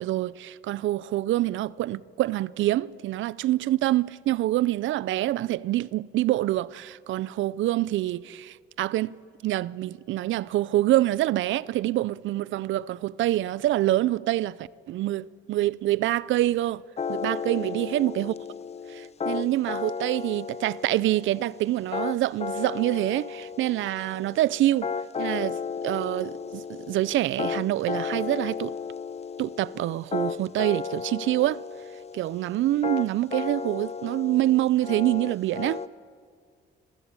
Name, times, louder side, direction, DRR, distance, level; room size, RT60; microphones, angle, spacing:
voice 1, 0.0-9.1 9.4-16.8 17.1-18.3 18.9-24.9 25.2-28.7 29.4-31.6 32.1-35.8, right 15 dB, 75° right, 0.5 m, -26 dB
sound 1, 17.0-35.9, left 6 dB, 35° left, 0.7 m, -34 dB
26.5 x 15.0 x 8.8 m
cardioid pair, 90°, 20 cm